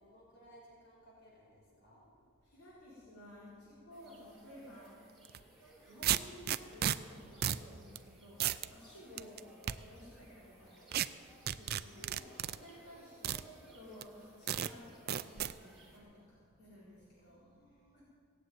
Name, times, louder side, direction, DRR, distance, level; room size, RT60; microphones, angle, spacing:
voice 1, 0.0-2.0 9.2-9.4 11.8-12.5 13.1-13.3 17.2-18.0, equal, 50° left, -4 dB, 4.7 m, -61 dB
voice 2, 2.4-5.0 5.4-5.6 5.8-10.9 11.3-17.4 17.9-18.0, equal, 75° left, -9 dB, 4.3 m, -55 dB
sound 1, 3.9-16.0, right 1 dB, ahead, 2.9 m, -61 dB
sound 2, 5.2-5.4 6.0-7.0 7.4-7.6 8.0-8.1 8.4-8.7 9.2-9.7 10.9-11.1 11.5-12.6 13.2-13.4 14.0-14.1 14.5-14.7 15.1-15.5, right 11 dB, 45° right, 0.4 m, -33 dB
17.5 x 7.7 x 9.3 m, 2.2 s
head